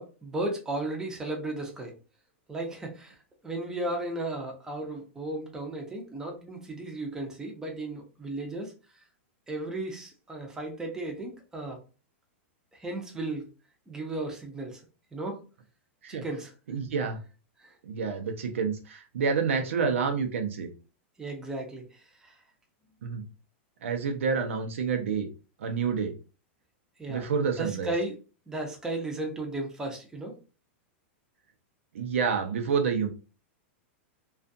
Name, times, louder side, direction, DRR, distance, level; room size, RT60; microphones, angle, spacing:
voice 1, 0.0-1.9 2.5-3.2 3.4-8.7 9.5-11.8 12.7-13.5 13.9-14.8 15.1-15.4 16.1-16.5 17.6-17.7 21.2-22.4 27.0-27.3 27.6-28.2 28.5-30.4, right 2 dB, 10° right, 1 dB, 0.6 m, -35 dB
voice 2, 16.7-17.2 17.8-20.7 23.0-23.3 23.8-25.3 25.6-26.1 27.1-27.9 31.9-33.1, right 5 dB, 90° right, 4 dB, 0.6 m, -28 dB
2.4 x 2.3 x 2.6 m, 0.33 s
supercardioid pair, 145°, 7 cm